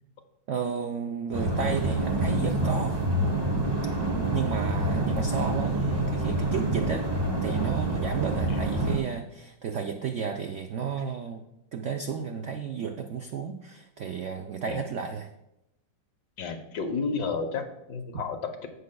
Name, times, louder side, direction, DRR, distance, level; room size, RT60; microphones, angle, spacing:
voice 1, 0.5-3.0 4.0-7.1 7.4-11.4 11.7-15.3, right 6 dB, 80° right, 5 dB, 0.6 m, -33 dB
sound 1, 1.3-9.0, right 2 dB, 25° right, 0.6 m, -27 dB
voice 2, 16.4-18.7, left 5 dB, 70° left, 5 dB, 1.6 m, -32 dB
16.0 x 6.4 x 2.2 m, 0.87 s
omnidirectional pair, 1.9 m